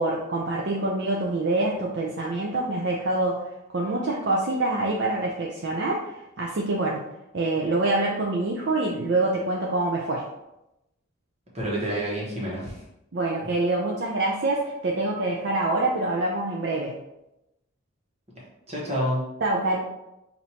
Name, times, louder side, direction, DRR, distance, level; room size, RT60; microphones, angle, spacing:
voice 1, 0.0-3.4 3.7-7.0 7.3-10.2 13.1-17.0 19.4-19.8, right 2 dB, 55° right, -2 dB, 0.5 m, -25 dB
voice 2, 11.5-12.8 18.3-19.2, equal, 30° right, -4 dB, 1.2 m, -29 dB
6.1 x 2.6 x 2.8 m, 0.89 s
head